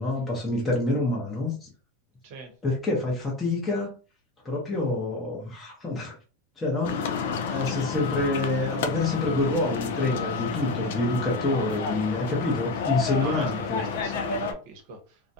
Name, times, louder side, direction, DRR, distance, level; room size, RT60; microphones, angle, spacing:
voice 1, 0.0-1.7 2.6-3.9 4.4-6.2 6.6-7.0 7.5-13.8, left 2 dB, 10° left, -4 dB, 0.7 m, -27 dB
sound 1, 6.8-14.5, left 6 dB, 65° left, 0.4 m, -30 dB
voice 2, 13.2-15.3, right 4 dB, 50° right, 3 dB, 0.8 m, -41 dB
2.4 x 2.1 x 2.7 m, 0.36 s
supercardioid pair, 160°, 0 cm